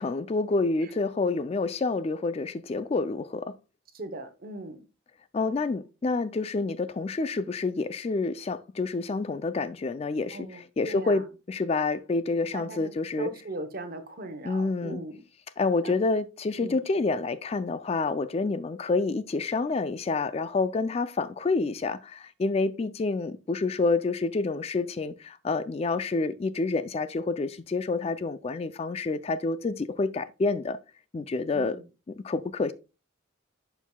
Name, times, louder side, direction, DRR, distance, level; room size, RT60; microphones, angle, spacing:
voice 1, 0.0-3.5 5.3-11.2 11.5-13.3 14.4-15.0 15.6-30.8 31.1-31.8 32.2-32.7, left 3 dB, 30° left, 0.3 m, -28 dB
voice 2, 3.9-4.8 10.3-11.2 12.5-12.9 13.2-15.2 15.8-15.9 16.6-16.8 31.5-31.8, right 2 dB, 45° right, 0.9 m, -39 dB
11.0 x 4.6 x 2.2 m
head